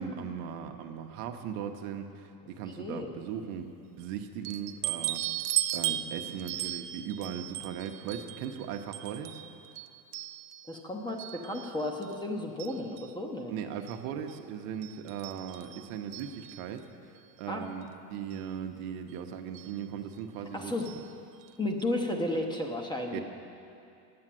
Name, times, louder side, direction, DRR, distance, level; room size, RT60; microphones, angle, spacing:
voice 1, 0.0-3.7 4.0-5.2 5.7-9.4 13.5-16.9 17.4-20.7 23.1-23.2, right 8 dB, 65° right, 5 dB, 1.0 m, -38 dB
voice 2, 2.8-3.1 10.7-13.5 17.5-17.7 20.5-20.9 21.6-23.2, left 1 dB, 10° left, 2 dB, 0.8 m, -33 dB
sound 1, 4.4-10.8 11.2-12.2 12.6-13.2 13.9-14.0 14.3-14.4 14.8-16.8 17.8-17.9 18.3-18.4 19.5-19.8 20.9-21.1 21.4-21.5 21.8-21.9, right 14 dB, 80° right, 0.7 m, -37 dB
9.6 x 8.6 x 7.6 m, 2.6 s
supercardioid pair, 125°, 48 cm